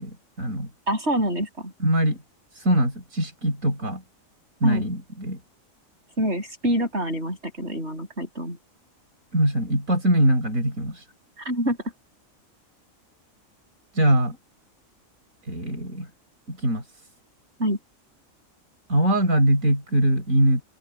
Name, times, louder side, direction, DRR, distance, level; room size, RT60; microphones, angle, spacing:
voice 1, 0.0-0.7 1.8-2.2 2.6-4.0 4.6-5.4 9.3-11.0 13.9-14.4 15.5-16.1 16.5-16.8 18.9-20.6, right 1 dB, 75° right, 6.8 m, -22 dB
voice 2, 0.9-1.7 4.6-4.9 6.2-8.6 11.4-11.8 17.6-17.8, equal, 55° right, 8.4 m, -26 dB
omnidirectional pair, 1.4 m